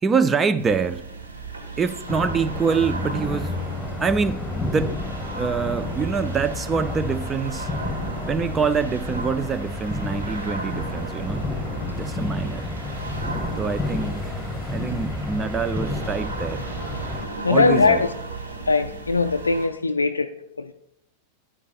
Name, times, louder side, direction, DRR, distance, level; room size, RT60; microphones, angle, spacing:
voice 1, 0.0-1.0 1.8-3.5 4.0-8.0 8.3-11.4 12.0-12.6 13.6-14.4 14.6-16.6 17.5-18.0, right 5 dB, 20° right, 0.4 m, -25 dB
sound 1, 0.6-19.7, right 3 dB, 75° right, 1.5 m, -35 dB
sound 2, 2.1-17.2, left 2 dB, 5° left, 1.7 m, -31 dB
voice 2, 17.4-18.1 18.7-20.3 20.6-20.7, left 4 dB, 80° left, 0.3 m, -20 dB
13.0 x 10.0 x 2.4 m
figure-of-eight pair, 90°, 0 cm